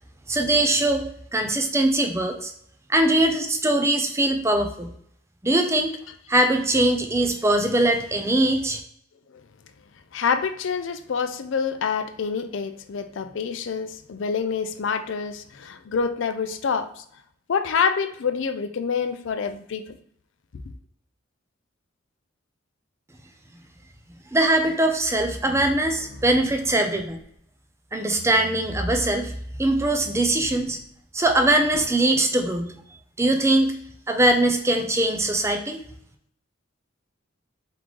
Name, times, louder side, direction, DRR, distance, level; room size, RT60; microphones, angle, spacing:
voice 1, 0.3-1.0 1.3-2.5 2.9-4.9 5.4-5.9 6.3-8.8 24.3-27.2 27.9-29.3 29.6-30.8 31.1-32.8 33.2-33.7 34.1-35.8, right 1 dB, 15° right, 0.5 m, -21 dB
voice 2, 10.1-17.0 17.5-20.0, left 6 dB, 65° left, 0.4 m, -27 dB
sound 1, 25.4-27.3 28.1-29.1 29.8-30.9 31.7-31.9, equal, 70° right, 1.5 m, -42 dB
3.7 x 3.6 x 3.1 m
head